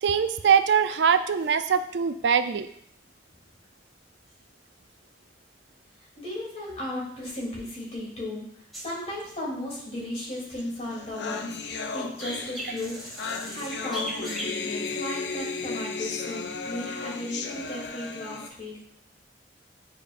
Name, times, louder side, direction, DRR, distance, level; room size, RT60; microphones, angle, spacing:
voice 1, 0.0-2.7, right 7 dB, 75° right, 10 dB, 0.4 m, -22 dB
voice 2, 6.2-18.8, left 1 dB, 40° left, -5 dB, 2.8 m, -36 dB
sound 1, 8.7-11.0 11.3-15.0 15.6-15.7, right 1 dB, ahead, 1.7 m, -39 dB
sound 2, 10.6-10.7 10.9-18.5, left 4 dB, 75° left, 0.6 m, -35 dB
8.6 x 5.1 x 2.5 m, 0.65 s
head